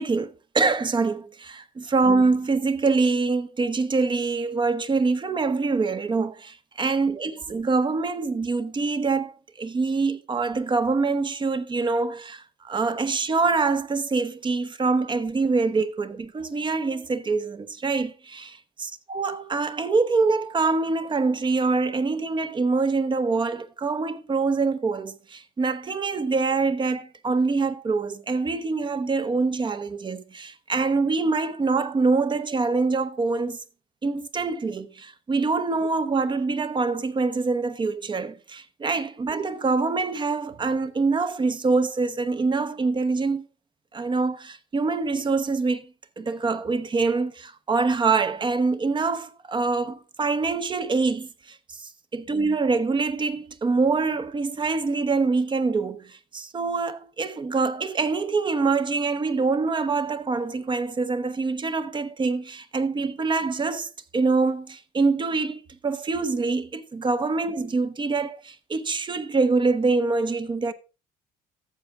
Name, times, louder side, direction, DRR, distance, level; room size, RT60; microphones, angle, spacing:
voice 1, 0.0-33.6 34.0-43.5 43.9-45.9 46.2-70.7, right 4 dB, 30° right, 0.8 m, -25 dB
13.0 x 7.1 x 3.6 m
cardioid pair, 110°, 17 cm